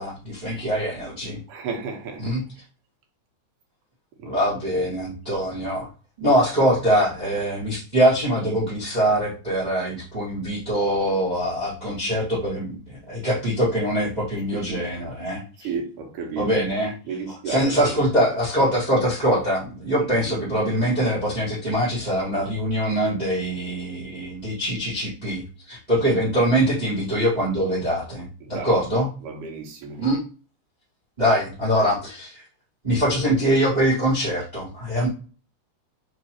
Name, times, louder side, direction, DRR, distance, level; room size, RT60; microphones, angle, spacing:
voice 1, 0.0-1.4 2.2-2.4 4.2-5.9 6.2-15.4 16.4-16.9 17.3-29.1 30.0-30.2 31.2-32.4 32.8-35.1, equal, 40° right, -8 dB, 0.6 m, -23 dB
voice 2, 1.5-2.3 4.2-4.3 4.7-4.9 14.5-15.1 15.6-16.6 17.1-18.0 20.0-20.5 28.4-28.8 29.2-30.0, right 5 dB, 80° right, 1 dB, 2.6 m, -33 dB
5.0 x 3.3 x 2.9 m, 0.37 s
omnidirectional pair, 3.7 m